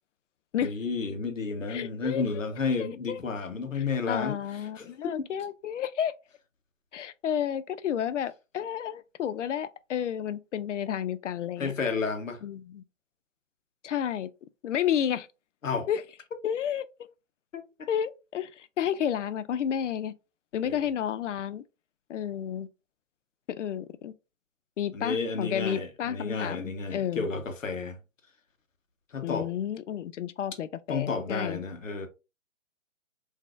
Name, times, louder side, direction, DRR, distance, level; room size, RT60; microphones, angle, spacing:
voice 1, 0.6-4.4 4.8-5.1 11.6-12.4 15.6-15.9 17.5-17.9 20.6-20.8 24.9-28.0 29.1-29.5 30.9-32.1, left 4 dB, 90° left, 0.9 m, -31 dB
voice 2, 1.7-2.3 2.8-3.2 3.8-6.1 6.9-11.7 12.4-12.8 13.8-14.3 14.6-15.3 15.9-16.0 16.4-16.9 17.9-20.1 20.5-21.6 22.1-22.7 23.5-24.1 24.8-27.3 29.2-31.6, left 9 dB, 70° left, 0.5 m, -31 dB
3.9 x 2.7 x 2.3 m
hypercardioid pair, 140°, 38 cm